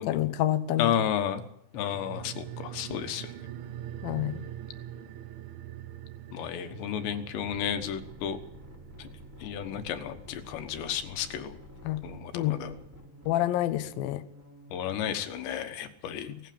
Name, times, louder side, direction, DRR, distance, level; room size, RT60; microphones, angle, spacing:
voice 1, 0.0-0.9 4.0-4.4 11.9-12.0 12.3-12.6 13.3-14.2, left 14 dB, 85° left, 10 dB, 2.0 m, -28 dB
voice 2, 0.8-1.4 1.7-3.3 6.3-8.4 9.0-9.1 9.4-11.6 12.0-12.7 14.7-16.3, left 9 dB, 70° left, 8 dB, 3.3 m, -32 dB
sound 1, 1.7-12.6 12.9-13.0, right 12 dB, 75° right, 2.3 m, -44 dB
sound 2, 6.5-15.1, left 1 dB, 5° right, 2.6 m, -50 dB
18.5 x 17.0 x 8.7 m, 0.75 s
omnidirectional pair, 5.6 m